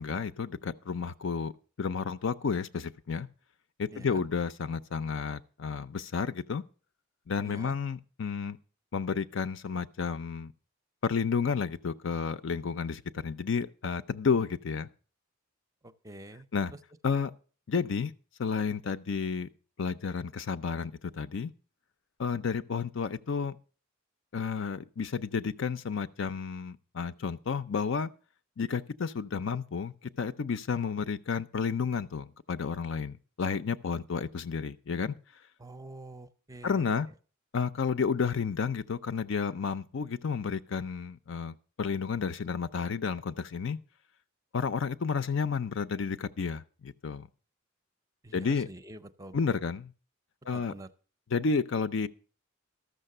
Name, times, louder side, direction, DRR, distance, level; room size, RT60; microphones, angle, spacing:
voice 1, 0.0-1.5 1.8-3.3 3.8-6.6 7.3-8.6 8.9-10.5 11.0-14.9 16.5-16.7 17.0-17.3 17.7-18.1 18.4-19.5 19.8-21.5 22.2-23.6 24.3-28.1 28.6-35.1 36.6-37.1 37.5-43.8 44.5-47.3 48.3-48.7 49.3-49.9 50.5-50.7 51.3-52.1, left 5 dB, 65° left, 0.5 m, -31 dB
voice 2, 3.9-4.2 7.4-7.7 15.8-16.8 35.6-37.0 48.2-49.6 50.5-50.9, right 2 dB, 15° right, 0.6 m, -47 dB
13.0 x 6.6 x 6.6 m
head